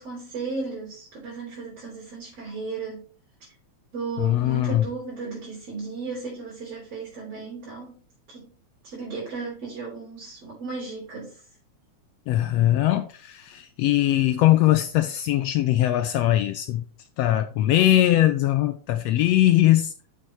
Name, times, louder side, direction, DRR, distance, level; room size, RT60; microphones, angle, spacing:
voice 1, 0.0-3.1 3.9-8.0 8.3-8.5 8.8-11.4, right 4 dB, 55° right, 4.6 m, -35 dB
voice 2, 4.2-4.8 12.3-16.8 17.2-19.9, left 13 dB, 80° left, 1.6 m, -21 dB
7.3 x 6.6 x 4.4 m
omnidirectional pair, 3.3 m